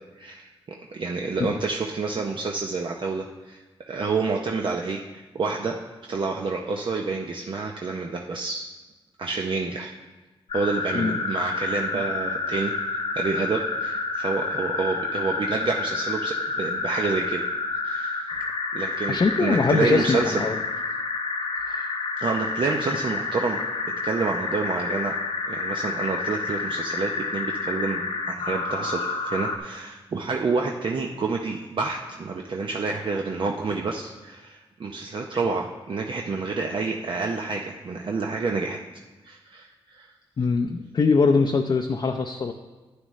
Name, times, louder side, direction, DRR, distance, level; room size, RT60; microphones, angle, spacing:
voice 1, 0.2-0.5 0.9-5.8 6.1-8.7 9.2-9.9 10.5-17.4 17.8-18.3 18.7-20.4 22.2-23.6 24.0-25.1 25.5-38.8 39.2-40.1, right 4 dB, 55° right, 1 dB, 0.7 m, -28 dB
sound 1, 10.5-29.6, left 4 dB, 75° left, 1.0 m, -29 dB
voice 2, 19.1-20.6 21.7-21.9 40.4-42.5, left 4 dB, 50° left, 4 dB, 0.6 m, -22 dB
11.5 x 9.0 x 3.2 m, 1.2 s
cardioid pair, 80°, 10 cm